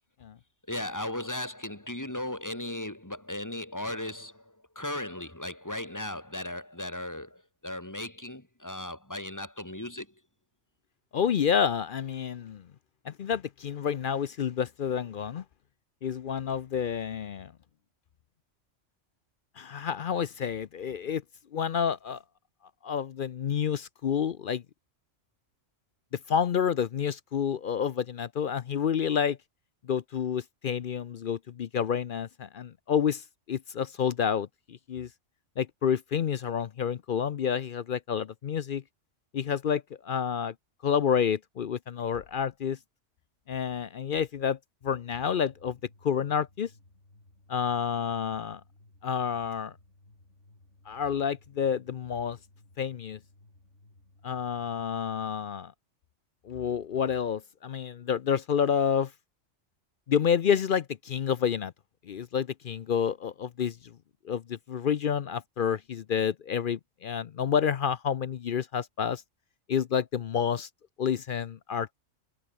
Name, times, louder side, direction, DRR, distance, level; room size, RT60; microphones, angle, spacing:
voice 1, 0.7-4.4 4.7-10.1, left 1 dB, 15° left, 2.8 m, -36 dB
voice 2, 11.1-12.6 13.0-15.4 16.0-17.5 19.6-21.2 21.5-22.2 22.8-24.6 26.3-29.4 29.8-35.1 35.6-38.8 39.3-40.5 40.8-42.8 43.5-44.6 44.8-45.8 46.0-46.7 47.5-48.6 49.0-49.7 50.9-52.4 52.8-53.2 54.2-55.7 56.4-59.1 60.1-61.7 62.1-63.9 64.2-69.2 69.7-70.7 71.0-72.0, left 7 dB, 55° left, 0.6 m, -29 dB
sound 1, 45.1-55.5, left 2 dB, 70° left, 5.5 m, -59 dB
omnidirectional pair, 1.3 m